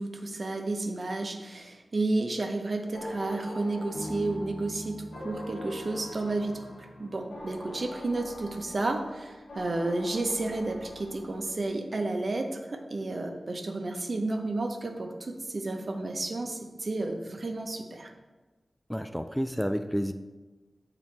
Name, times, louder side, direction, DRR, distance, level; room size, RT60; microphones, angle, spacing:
voice 1, 0.0-6.6 7.0-18.1, right 2 dB, 55° right, 3 dB, 0.8 m, -32 dB
sound 1, 2.9-11.7, left 1 dB, 90° left, 1.2 m, -44 dB
Bass guitar, 3.9-7.5, equal, 60° left, 1.7 m, -44 dB
voice 2, 18.9-20.1, equal, ahead, 7 dB, 0.3 m, -30 dB
7.3 x 3.9 x 4.5 m, 1.2 s
wide cardioid pair, 70°, 0 cm